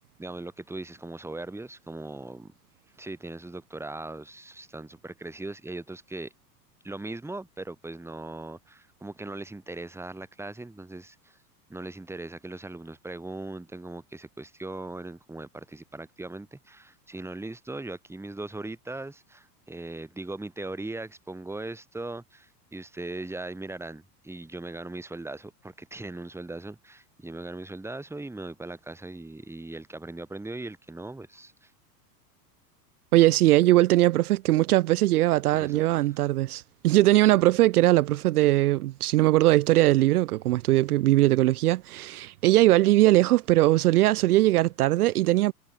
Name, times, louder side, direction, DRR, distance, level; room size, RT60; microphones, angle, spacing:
voice 1, 0.2-2.5 3.0-6.3 6.8-11.4 11.7-31.7 35.5-35.8, right 2 dB, 5° right, 2.0 m, -39 dB
voice 2, 33.1-45.5, right 16 dB, 65° right, 0.8 m, -20 dB
figure-of-eight pair, 90°, 49 cm